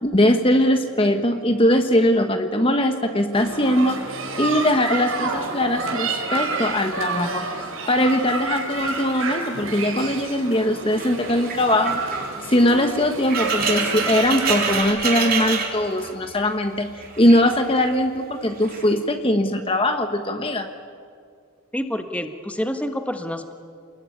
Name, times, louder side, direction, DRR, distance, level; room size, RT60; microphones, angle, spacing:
voice 1, 0.0-4.0 4.4-7.5 7.9-12.0 12.5-20.7, left 1 dB, 25° left, 6 dB, 1.2 m, -21 dB
sound 1, 3.3-14.8, right 3 dB, 70° right, 5.0 m, -29 dB
sound 2, 10.9-16.5 16.8-18.0 18.6-18.9, right 5 dB, 45° right, 3.8 m, -28 dB
voice 2, 21.7-23.5, equal, 5° left, 7 dB, 1.4 m, -28 dB
28.5 x 20.5 x 9.8 m, 2.2 s
head